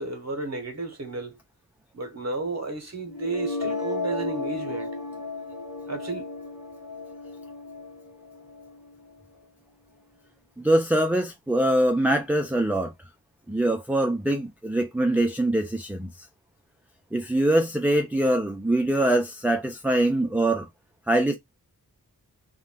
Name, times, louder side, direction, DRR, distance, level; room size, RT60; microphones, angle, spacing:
voice 1, 0.0-1.4 1.9-4.9 5.9-6.3, right 3 dB, 45° right, 0.8 m, -32 dB
sound 1, 3.1-9.1, left 3 dB, 55° left, 0.9 m, -34 dB
voice 2, 10.6-12.9 13.5-16.1 17.1-20.7 21.1-21.4, right 1 dB, 5° right, 0.4 m, -23 dB
2.5 x 2.2 x 3.3 m
wide cardioid pair, 75°, 36 cm